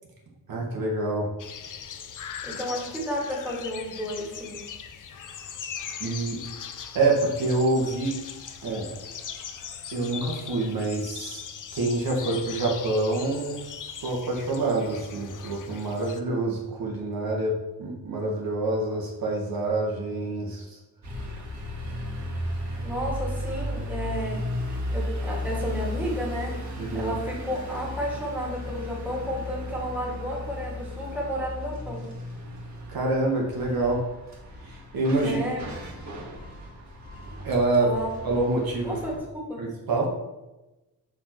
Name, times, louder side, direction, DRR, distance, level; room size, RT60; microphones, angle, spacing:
voice 1, 0.5-1.3 6.0-6.4 6.9-8.2 8.6-9.0 9.9-11.4 11.7-13.6 14.0-17.5 17.8-20.8 26.8-27.1 32.9-34.0 34.6-35.4 37.4-37.9 38.2-39.0 39.6-40.1, right 2 dB, 65° right, -1 dB, 1.5 m, -26 dB
sound 1, 1.4-16.2, left 7 dB, 55° left, 0.6 m, -40 dB
voice 2, 2.4-4.6 22.8-26.6 26.9-32.1 35.2-35.6 37.8-38.1 38.8-39.7, equal, 5° right, -4 dB, 2.1 m, -32 dB
sound 2, 21.0-39.2, left 1 dB, 45° right, 1.7 m, -35 dB
6.2 x 4.7 x 4.5 m, 1.0 s
wide cardioid pair, 130°, 38 cm